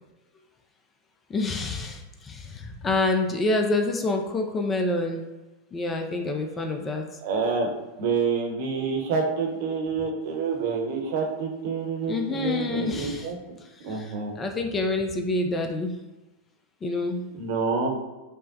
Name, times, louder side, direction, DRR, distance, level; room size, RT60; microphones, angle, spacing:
voice 1, 1.3-5.2 5.7-7.0 12.1-13.3 13.8-16.0 16.8-17.3, left 2 dB, 20° left, 4 dB, 0.4 m, -27 dB
voice 2, 7.2-7.7 8.0-13.3 13.8-14.4 17.3-17.9, right 5 dB, 50° right, 0 dB, 0.8 m, -27 dB
5.4 x 2.0 x 2.6 m, 1.1 s
figure-of-eight pair, 90°, 0 cm